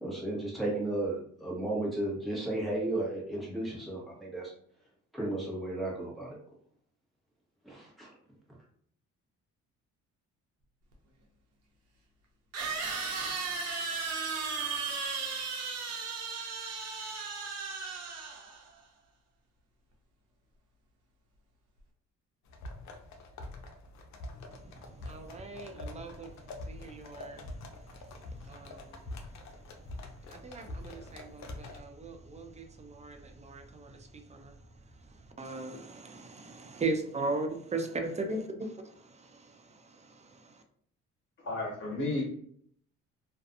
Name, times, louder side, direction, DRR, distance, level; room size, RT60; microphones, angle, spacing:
voice 1, 0.0-4.5 5.1-6.4 7.6-8.1, right 2 dB, ahead, -5 dB, 1.1 m, -34 dB
sound 1, 10.9-11.0 12.5-18.7, right 4 dB, 60° right, 0.7 m, -35 dB
sound 2, 22.5-31.8, left 2 dB, 65° left, 0.5 m, -45 dB
voice 2, 24.5-26.3 26.7-27.5 28.5-29.0 30.3-34.0 34.3-34.5 35.4-38.4 38.8-40.6, right 3 dB, 25° right, 4 dB, 0.4 m, -38 dB
voice 3, 38.0-38.4 41.4-42.2, left 2 dB, 40° left, -3 dB, 1.3 m, -34 dB
2.5 x 2.3 x 2.5 m, 0.62 s
cardioid pair, 90°, 30 cm